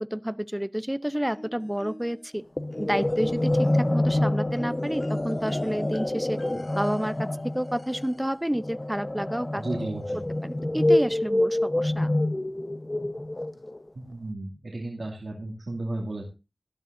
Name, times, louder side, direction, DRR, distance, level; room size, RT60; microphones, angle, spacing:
voice 1, 0.0-2.4 2.8-6.4 6.8-9.6 10.4-12.1, equal, 10° right, 17 dB, 0.6 m, -30 dB
sound 1, 1.3-2.3 2.7-8.4 9.6-9.7 10.1-10.2, left 1 dB, 65° left, 4.7 m, -45 dB
sound 2, 2.6-13.9, left 1 dB, 35° left, 0.9 m, -27 dB
voice 2, 9.6-10.2 13.9-16.2, right 2 dB, 90° right, -2 dB, 2.4 m, -34 dB
18.0 x 12.0 x 2.6 m, 0.28 s
wide cardioid pair, 40°, 0 cm